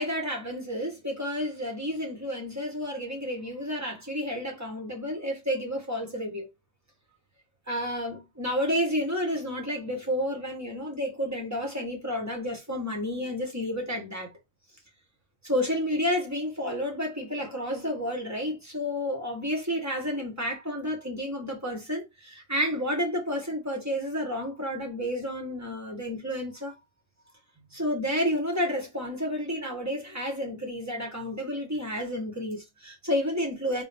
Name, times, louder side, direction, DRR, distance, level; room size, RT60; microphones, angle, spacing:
voice 1, 0.0-6.5 7.7-14.3 15.4-26.7 27.7-33.8, equal, 15° right, 1.3 m, -30 dB
3.7 x 2.6 x 3.5 m
omnidirectional pair, 1.3 m